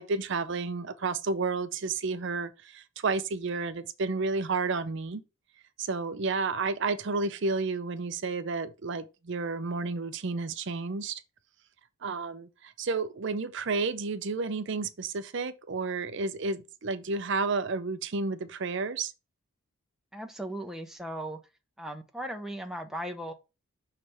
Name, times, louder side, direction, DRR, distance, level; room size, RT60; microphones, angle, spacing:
voice 1, 0.0-5.2 5.8-11.2 12.0-19.1, right 4 dB, 55° right, 0.5 m, -31 dB
voice 2, 20.1-21.4 21.8-23.3, right 1 dB, ahead, 0.7 m, -37 dB
6.3 x 3.3 x 5.5 m
head